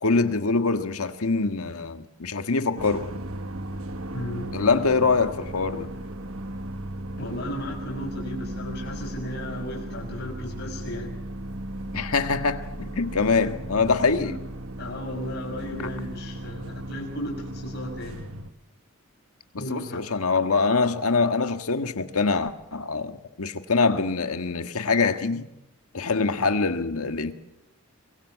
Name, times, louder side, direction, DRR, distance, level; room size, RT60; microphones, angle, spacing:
voice 1, 0.0-3.1 4.5-5.9 11.9-14.4 15.8-15.9 19.5-25.5 25.9-27.3, left 4 dB, 80° left, 1.6 m, -24 dB
sound 1, 2.8-18.5, right 1 dB, 75° right, 1.3 m, -36 dB
voice 2, 4.1-4.5 7.2-11.1 14.1-14.3 14.8-18.2 19.6-20.1, left 1 dB, 50° left, 6.0 m, -35 dB
23.0 x 23.0 x 7.4 m
head